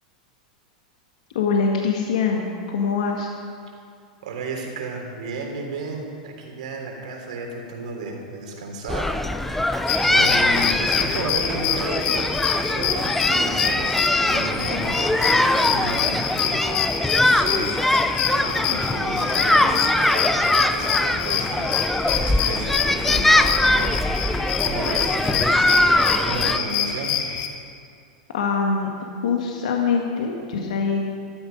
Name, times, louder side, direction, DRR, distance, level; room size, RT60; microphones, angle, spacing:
voice 1, 1.3-3.3 28.3-28.9 29.2-31.1, left 5 dB, 70° left, 1 dB, 1.7 m, -23 dB
voice 2, 4.2-16.9 17.1-21.8 22.0-27.2, right 3 dB, 70° right, 1 dB, 3.5 m, -33 dB
sound 1, 8.9-26.6, left 1 dB, 5° left, 0.6 m, -22 dB
sound 2, 9.9-27.5, left 9 dB, 55° left, 1.6 m, -26 dB
15.0 x 12.0 x 5.3 m, 2.4 s
hypercardioid pair, 100°, 4 cm